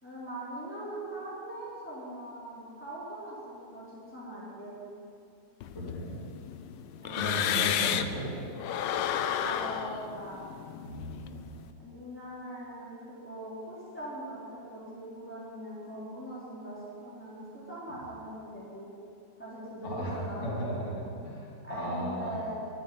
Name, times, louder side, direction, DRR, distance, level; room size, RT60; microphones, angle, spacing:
voice 1, 0.0-4.8 7.0-7.4 9.4-10.4 11.8-18.9 19.4-21.0 21.6-22.6, right 1 dB, 5° left, -9 dB, 3.8 m, -41 dB
sound 1, 5.6-8.2 8.6-11.6, left 10 dB, 80° left, 1.3 m, -32 dB
voice 2, 5.7-6.2 7.2-8.4 10.8-11.4 17.9-18.0 19.8-22.4, equal, 40° left, -7 dB, 3.3 m, -35 dB
11.5 x 9.6 x 9.5 m, 2.5 s
omnidirectional pair, 2.0 m